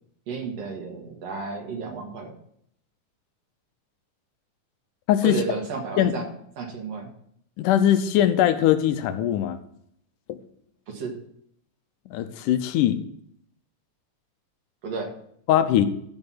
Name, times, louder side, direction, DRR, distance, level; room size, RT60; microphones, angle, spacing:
voice 1, 0.3-2.3 5.2-6.3 6.6-7.1 10.9-11.2 14.8-15.1, right 4 dB, 55° right, 1 dB, 2.6 m, -32 dB
voice 2, 7.6-9.6 10.3-10.4 12.1-13.0 15.5-15.9, left 11 dB, 90° left, 10 dB, 2.3 m, -21 dB
13.0 x 4.5 x 5.9 m, 0.69 s
omnidirectional pair, 3.6 m